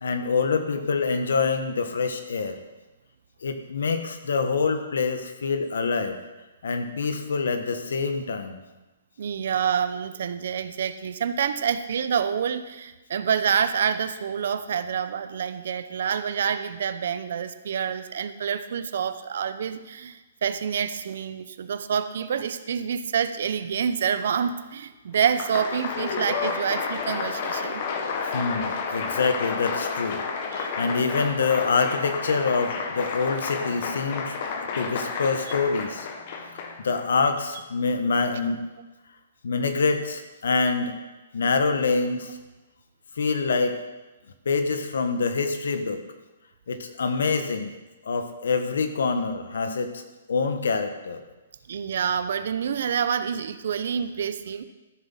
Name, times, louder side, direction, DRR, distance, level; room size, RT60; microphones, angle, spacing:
voice 1, 0.0-2.6 3.4-6.2 6.6-8.6 28.3-30.2 30.4-34.3 34.7-36.1 36.8-38.6 39.4-40.9 41.3-42.4 43.2-43.8 44.4-46.0 46.7-47.7 48.0-50.0 50.3-51.2, left 4 dB, 80° left, 7 dB, 1.5 m, -25 dB
voice 2, 9.2-27.8 30.5-30.7 51.7-54.7, right 7 dB, 65° right, 12 dB, 0.8 m, -27 dB
Applause, 25.1-37.0, left 5 dB, 45° left, 1.5 m, -31 dB
13.5 x 7.3 x 5.6 m, 1.1 s
hypercardioid pair, 145°, 0 cm